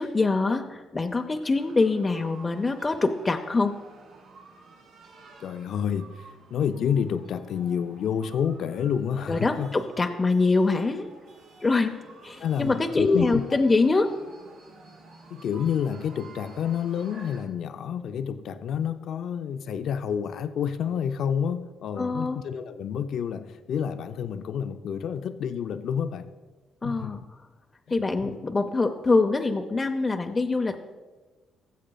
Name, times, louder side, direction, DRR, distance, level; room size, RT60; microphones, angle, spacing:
voice 1, 0.0-3.8 9.3-11.1 11.6-14.1 22.0-22.4 26.8-27.2 27.9-30.8, left 3 dB, 25° left, 4 dB, 0.6 m, -24 dB
sound 1, 1.5-17.5, right 3 dB, 90° right, 1.8 m, -51 dB
voice 2, 5.4-9.7 12.4-13.6 15.3-26.3 26.8-27.2 28.2-28.4, left 8 dB, 70° left, 10 dB, 0.4 m, -29 dB
17.5 x 7.4 x 2.3 m, 1.3 s
cardioid pair, 90°, 0 cm